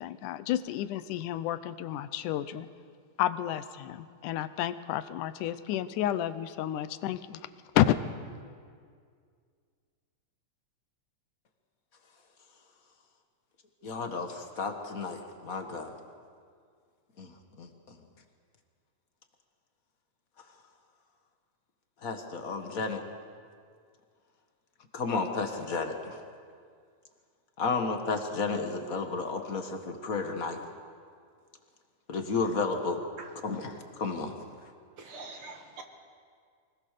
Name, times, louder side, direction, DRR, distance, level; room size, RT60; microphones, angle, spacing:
voice 1, 0.0-2.7 3.2-7.4 7.7-7.9, left 12 dB, 85° left, 14 dB, 2.3 m, -30 dB
voice 2, 13.8-15.9 17.2-17.3 17.6-18.0 22.0-23.0 24.9-26.2 27.6-30.6 32.1-33.0 33.4-34.4, left 4 dB, 40° left, 5 dB, 1.2 m, -32 dB
voice 3, 35.0-35.8, right 3 dB, 50° right, 4 dB, 2.1 m, -44 dB
24.5 x 19.5 x 6.7 m, 2.1 s
omnidirectional pair, 3.5 m